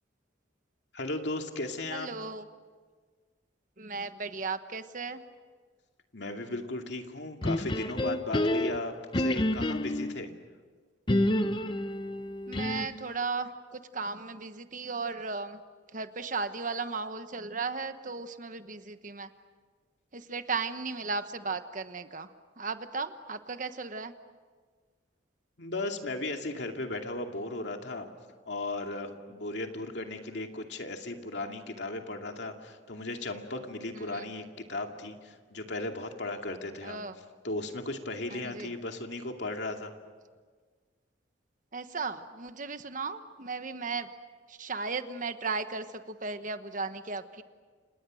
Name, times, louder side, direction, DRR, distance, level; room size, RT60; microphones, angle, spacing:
voice 1, 0.9-2.1 6.1-10.3 25.6-28.1 28.5-37.0 37.4-39.9, left 2 dB, 65° left, 3 dB, 2.5 m, -36 dB
voice 2, 1.9-2.5 3.8-5.2 12.5-15.6 15.9-19.3 20.1-22.3 22.6-24.1 33.9-34.3 36.8-37.1 38.3-38.7 41.7-44.1 44.5-47.4, right 4 dB, 45° right, 9 dB, 1.2 m, -36 dB
sound 1, 7.4-10.2 11.1-13.1, left 1 dB, 25° left, 0.8 m, -29 dB
30.0 x 28.0 x 6.4 m, 1.5 s
head